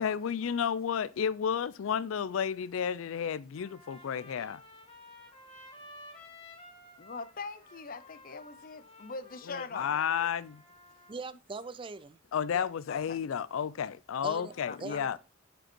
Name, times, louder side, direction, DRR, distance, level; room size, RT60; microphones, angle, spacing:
voice 1, 0.0-4.6 8.3-8.4 9.5-10.6 12.3-15.2, left 7 dB, 85° left, 0.4 m, -32 dB
Trumpet, 3.5-11.2, left 1 dB, 30° left, 2.1 m, -54 dB
voice 2, 7.0-10.0 12.5-13.2 14.7-15.0, left 4 dB, 45° left, 0.6 m, -42 dB
voice 3, 11.1-12.2 14.2-14.5 14.8-15.2, right 4 dB, 25° right, 0.4 m, -41 dB
9.7 x 5.2 x 4.4 m
head